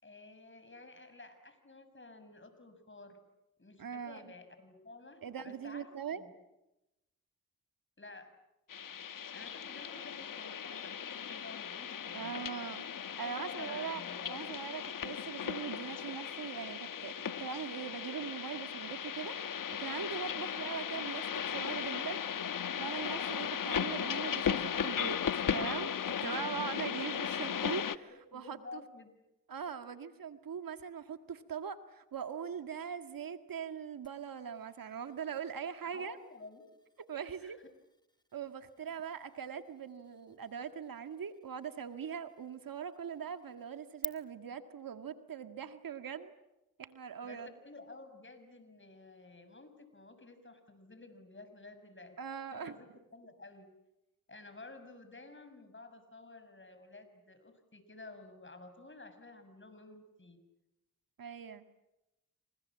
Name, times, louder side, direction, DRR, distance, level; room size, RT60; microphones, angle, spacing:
voice 1, 0.0-3.2 3.6-6.4 8.0-8.3 9.3-12.4 13.2-14.4 26.6-26.9 28.1-29.1 35.9-36.6 37.2-37.6 38.8-38.9 47.2-52.2 52.5-52.9 53.1-53.7 54.3-60.4, left 3 dB, 35° left, 10 dB, 6.8 m, -52 dB
voice 2, 3.8-4.2 5.2-6.2 12.1-12.9 13.2-22.4 22.8-28.8 29.5-36.2 37.1-37.6 38.3-46.3 46.8-47.5 52.2-52.8 61.2-61.6, right 7 dB, 70° right, 9 dB, 2.0 m, -41 dB
sound 1, 8.7-28.0, left 8 dB, 65° left, 1.2 m, -37 dB
sound 2, 34.0-44.1, left 1 dB, 10° left, 1.7 m, -52 dB
28.5 x 26.0 x 7.5 m, 0.93 s
supercardioid pair, 40°, 36 cm